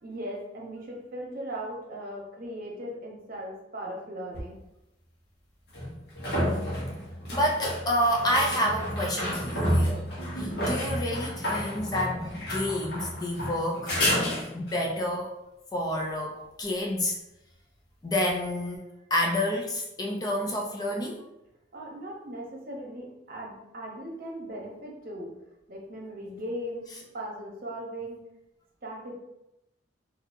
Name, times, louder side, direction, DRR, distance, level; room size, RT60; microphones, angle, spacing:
voice 1, 0.0-4.6 21.7-25.3 25.7-28.2 28.8-29.1, right 1 dB, 50° right, -2 dB, 0.8 m, -38 dB
sound 1, 4.3-4.4 5.7-14.9 18.3-18.4, equal, 60° left, 1.0 m, -30 dB
voice 2, 7.3-10.0 10.3-13.9 14.5-15.3 15.7-17.2 18.0-18.9 19.1-21.3, left 1 dB, 20° left, 0 dB, 0.4 m, -29 dB
4.1 x 2.6 x 2.5 m, 0.89 s
head